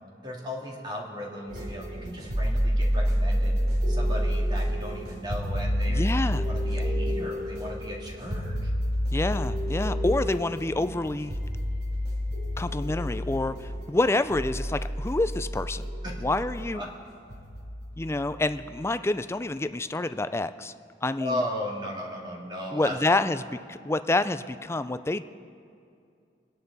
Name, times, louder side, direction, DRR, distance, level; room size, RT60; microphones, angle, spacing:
voice 1, 0.2-6.1 6.4-8.7 16.0-16.1 16.7-16.9 21.2-23.3, left 1 dB, 25° right, -2 dB, 2.2 m, -36 dB
sound 1, 1.5-18.7, equal, 60° right, 3.0 m, -29 dB
voice 2, 5.9-6.5 9.1-11.3 12.6-15.9 16.2-16.8 18.0-20.7 21.0-21.4 22.7-25.2, left 2 dB, 15° left, 12 dB, 0.4 m, -28 dB
26.0 x 10.5 x 4.1 m, 2.4 s
head